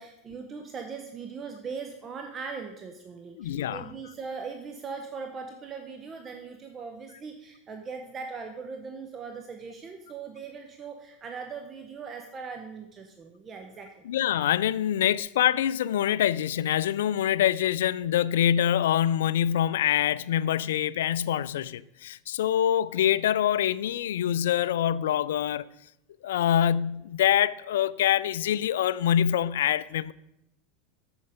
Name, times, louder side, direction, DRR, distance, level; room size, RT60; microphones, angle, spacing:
voice 1, 0.0-13.9, right 5 dB, 30° right, 0.9 m, -40 dB
voice 2, 3.4-3.8 14.1-25.7 26.2-30.1, left 10 dB, 80° left, 0.3 m, -25 dB
7.7 x 6.9 x 5.0 m
hypercardioid pair, 105°, 0 cm